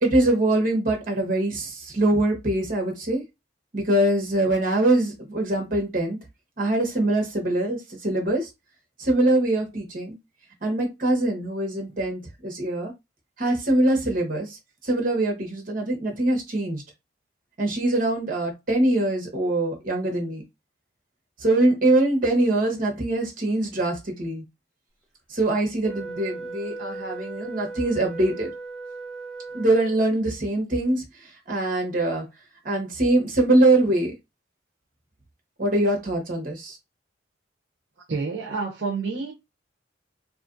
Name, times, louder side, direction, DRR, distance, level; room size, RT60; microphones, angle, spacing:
voice 1, 0.0-3.2 3.7-6.2 6.6-8.5 9.0-10.1 10.6-12.9 13.4-14.5 14.8-16.8 17.6-20.4 21.4-24.4 25.3-28.5 29.5-31.0 31.5-32.2 32.6-34.1 35.6-36.8, right 1 dB, 45° right, 1.0 m, -23 dB
Wind instrument woodwind instrument, 25.8-30.2, right 3 dB, ahead, 0.7 m, -37 dB
voice 2, 38.1-39.3, right 4 dB, 70° right, 0.6 m, -28 dB
2.7 x 2.4 x 2.5 m
head